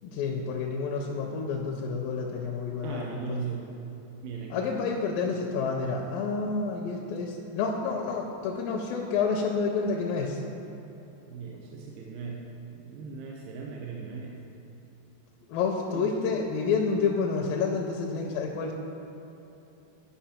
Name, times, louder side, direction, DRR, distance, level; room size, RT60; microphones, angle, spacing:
voice 1, 0.0-3.4 4.5-10.4 15.5-18.7, left 5 dB, 85° left, 0 dB, 2.3 m, -29 dB
voice 2, 2.8-3.7 4.2-4.7 11.3-12.4 12.7-14.4 15.9-16.4, right 5 dB, 85° right, -1 dB, 2.5 m, -38 dB
11.5 x 5.6 x 4.3 m, 3.0 s
omnidirectional pair, 4.1 m